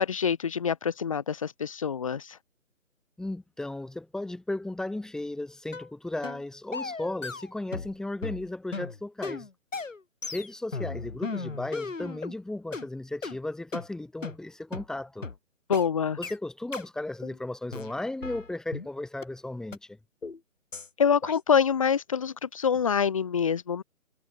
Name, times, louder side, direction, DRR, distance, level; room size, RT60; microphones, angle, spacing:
voice 1, 0.0-2.4 15.7-16.2 21.0-23.8, left 7 dB, 25° left, 1.2 m, -26 dB
voice 2, 3.2-9.5 10.3-15.3 16.2-20.0, left 2 dB, ahead, 6.3 m, -35 dB
sound 1, 5.7-5.9 6.2-6.4 6.7-8.0 8.2-12.4 12.7-12.9 13.2-13.4 13.7-13.9 14.2-14.4 14.7-14.9 15.2-15.4 15.7-15.9 16.2-16.4 16.7-16.9 17.2-17.4 17.7-18.9 19.2-19.3 19.7-19.8 20.2-20.4 20.7-20.9 21.2-21.4, left 4 dB, 60° left, 4.5 m, -36 dB
figure-of-eight pair, 150°, 42 cm